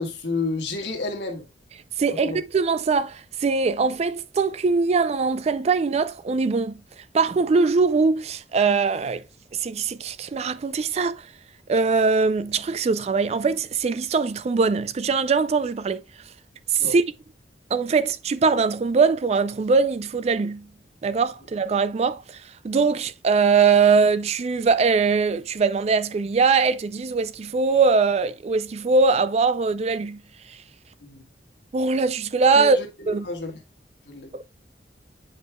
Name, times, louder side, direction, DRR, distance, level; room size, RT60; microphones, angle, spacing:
voice 1, 0.0-1.4 2.2-2.4 16.8-16.9 31.0-31.2 32.5-33.5 34.1-34.3, left 3 dB, 75° left, 1.5 m, -30 dB
voice 2, 2.0-9.2 9.5-11.3 11.7-16.0 16.7-17.0 17.7-20.7 21.0-30.2 30.5-30.6 31.7-32.8 33.1-33.3, right 4 dB, 35° right, 0.3 m, -22 dB
8.0 x 5.3 x 2.2 m
head